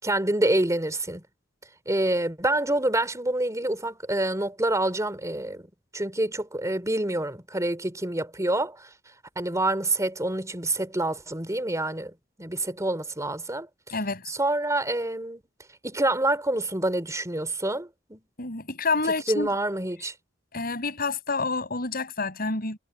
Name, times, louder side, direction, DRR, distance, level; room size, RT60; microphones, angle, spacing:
voice 1, 0.0-1.2 1.9-5.7 5.9-8.9 9.4-13.7 14.3-15.4 15.8-18.2 19.3-20.1, right 1 dB, 15° right, 3.9 m, -27 dB
voice 2, 13.9-14.3 18.4-19.5 20.5-22.8, left 3 dB, 50° left, 6.6 m, -28 dB
head